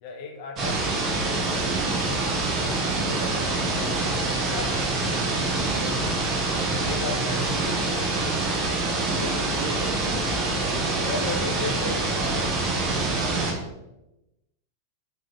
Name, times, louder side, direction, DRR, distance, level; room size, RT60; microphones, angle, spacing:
voice 1, 0.0-0.8 1.1-1.9 4.3-4.8 6.8-8.4 11.0-12.7 13.1-13.2, left 4 dB, 45° left, 2 dB, 0.7 m, -35 dB
sound 1, 0.6-13.5, right 2 dB, 30° right, 0.9 m, -25 dB
voice 2, 3.1-3.7 5.7-6.1 9.0-11.2 11.6-11.9 13.1-13.8, right 3 dB, 55° right, 4 dB, 0.6 m, -39 dB
3.8 x 3.2 x 3.1 m, 0.94 s
figure-of-eight pair, 90°, 0 cm